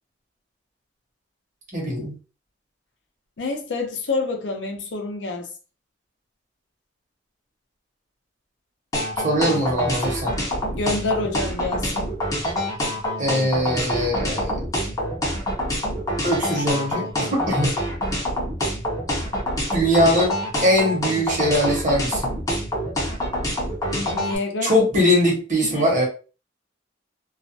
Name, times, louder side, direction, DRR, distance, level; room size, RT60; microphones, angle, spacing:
voice 1, 1.7-2.1 9.2-10.3 13.2-14.6 16.2-17.7 19.7-20.3 20.6-22.3 24.6-26.0, equal, 40° right, 1.0 m, -21 dB
voice 2, 3.4-5.5 10.7-12.1 23.9-24.8 25.7-25.9, left 3 dB, 70° left, 0.6 m, -27 dB
sound 1, 8.9-24.4, equal, 20° left, 0.6 m, -26 dB
2.4 x 2.1 x 2.6 m
head